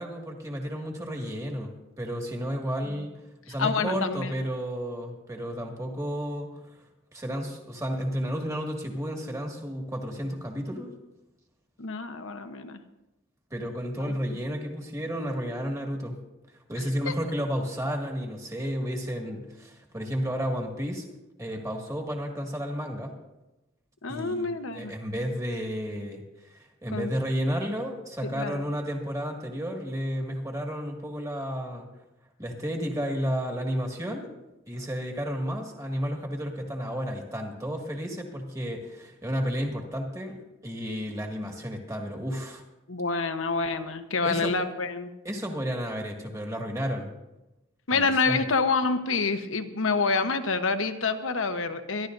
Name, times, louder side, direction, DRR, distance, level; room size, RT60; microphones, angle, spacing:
voice 1, 0.0-3.1 3.5-6.8 7.1-10.9 13.5-16.1 16.5-21.1 21.4-23.1 24.1-31.9 32.4-34.2 34.7-40.4 40.6-42.6 44.2-44.5 45.2-47.1 47.9-48.5, equal, 15° right, 1 dB, 2.0 m, -32 dB
voice 2, 3.6-4.3 11.8-12.8 17.1-17.2 24.0-24.9 26.9-27.1 28.2-28.6 42.9-45.1 47.9-52.1, left 4 dB, 75° left, 8 dB, 1.0 m, -27 dB
25.5 x 12.0 x 2.6 m, 0.97 s
head